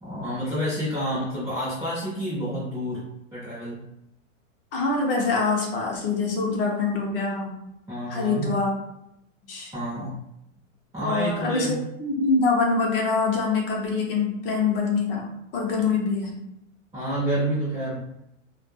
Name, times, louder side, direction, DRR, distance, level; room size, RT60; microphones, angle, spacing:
voice 1, 0.0-3.8 6.5-6.6 7.9-8.6 9.7-10.2 10.9-11.8 16.9-18.0, equal, 10° right, -11 dB, 0.5 m, -29 dB
voice 2, 4.7-7.5 8.1-8.7 9.5-9.7 11.0-15.3 15.5-16.3, left 4 dB, 45° left, 0 dB, 0.6 m, -24 dB
2.2 x 2.1 x 3.3 m, 0.81 s
supercardioid pair, 175°, 39 cm